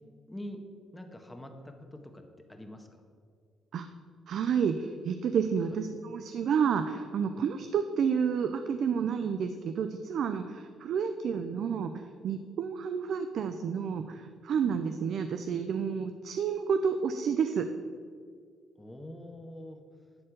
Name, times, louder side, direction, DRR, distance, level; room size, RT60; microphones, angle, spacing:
voice 1, 0.3-0.6 0.9-2.2 2.5-2.9 5.7-5.8 18.8-19.8, left 1 dB, 10° left, 4 dB, 1.5 m, -44 dB
voice 2, 4.3-17.7, right 6 dB, 65° right, 9 dB, 0.5 m, -30 dB
11.5 x 4.3 x 7.9 m, 2.1 s
supercardioid pair, 60°, 0 cm